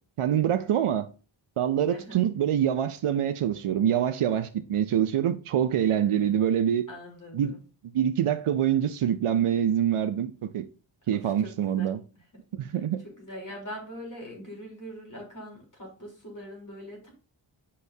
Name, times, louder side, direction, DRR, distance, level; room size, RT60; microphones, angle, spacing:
voice 1, 0.2-1.1 1.6-6.9 7.3-7.6 7.8-10.6 11.1-12.0 12.5-13.0, right 9 dB, 85° right, 0.6 m, -25 dB
voice 2, 1.9-2.3 5.9-6.4 6.9-7.6 11.2-11.9 12.6-17.1, equal, 40° left, 3.6 m, -43 dB
8.4 x 5.3 x 2.7 m
wide cardioid pair, 70°, 49 cm